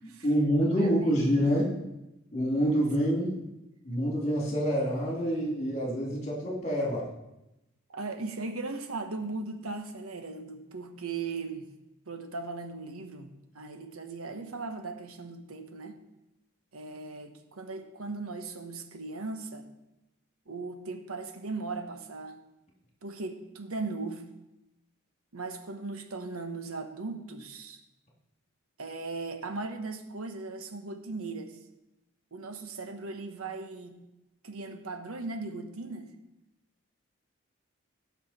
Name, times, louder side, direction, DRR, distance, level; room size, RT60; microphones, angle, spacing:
voice 1, 0.0-1.8 2.3-3.4 3.8-7.1, equal, 30° left, -1 dB, 2.8 m, -27 dB
voice 2, 0.6-1.2 1.5-1.6 7.9-11.7 12.1-16.0 16.7-19.7 20.5-22.4 23.0-24.3 25.3-27.8 28.8-31.6 32.3-34.0 34.4-36.1, right 3 dB, 90° right, 6 dB, 1.2 m, -38 dB
17.5 x 6.0 x 4.3 m, 0.92 s
head